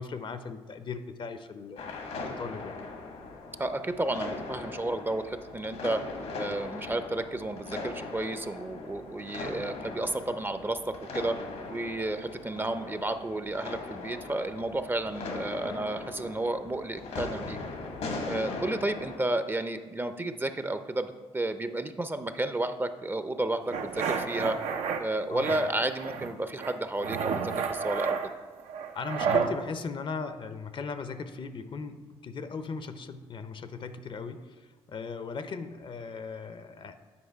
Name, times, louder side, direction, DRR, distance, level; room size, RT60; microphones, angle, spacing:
voice 1, 0.0-2.8 25.3-25.6 28.9-37.0, left 4 dB, 50° left, 10 dB, 0.6 m, -38 dB
sound 1, 1.8-19.2, left 3 dB, 75° left, 1.2 m, -39 dB
voice 2, 3.6-6.0 6.3-10.8 11.1-11.4 11.7-17.6 18.2-24.6 25.0-28.3, right 2 dB, 20° right, 9 dB, 0.5 m, -32 dB
sound 2, 23.7-25.0 25.4-26.3 26.6-29.5, right 6 dB, 80° right, 0.6 m, -31 dB
8.7 x 4.8 x 4.6 m, 1.4 s
supercardioid pair, 65°, 11 cm